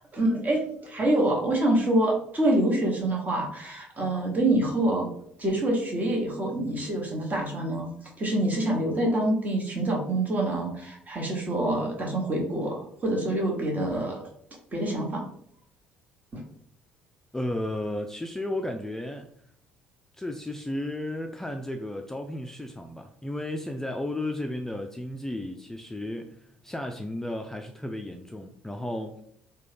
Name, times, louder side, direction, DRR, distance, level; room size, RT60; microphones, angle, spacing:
voice 1, 0.1-5.1 5.4-7.9 8.2-14.2 14.7-15.3 16.3-16.4, right 1 dB, 30° right, 0 dB, 1.1 m, -26 dB
voice 2, 17.3-19.3 20.2-29.2, left 1 dB, 10° left, 4 dB, 0.3 m, -33 dB
3.7 x 2.3 x 3.3 m, 0.67 s
hypercardioid pair, 55°, 5 cm